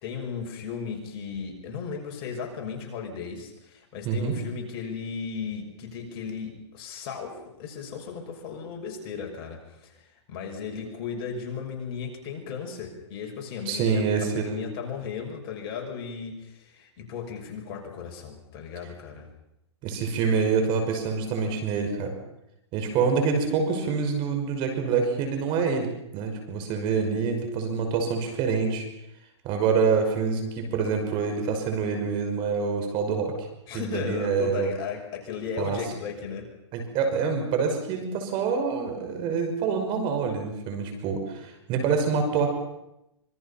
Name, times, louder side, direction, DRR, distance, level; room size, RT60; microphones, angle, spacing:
voice 1, 0.0-19.3 33.7-36.5, left 6 dB, 40° left, 2 dB, 6.3 m, -36 dB
voice 2, 13.7-14.6 19.8-22.1 22.7-28.8 29.4-33.5 33.7-34.7 35.6-35.8 36.7-42.5, right 5 dB, 35° right, 5 dB, 5.6 m, -26 dB
26.0 x 23.5 x 5.8 m, 0.85 s
hypercardioid pair, 140°, 15 cm